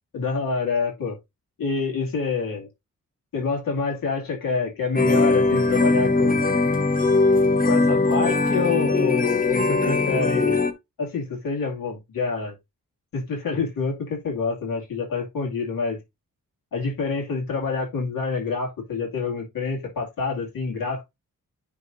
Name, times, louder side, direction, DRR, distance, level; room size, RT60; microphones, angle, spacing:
voice 1, 0.1-1.2 1.6-2.7 3.3-6.4 7.6-10.7 11.0-12.5 13.1-16.0 16.7-21.0, left 4 dB, 85° left, 2.4 m, -27 dB
sound 1, 5.0-10.7, left 3 dB, 25° left, 0.8 m, -20 dB
10.5 x 3.9 x 2.6 m
wide cardioid pair, 110°, 33 cm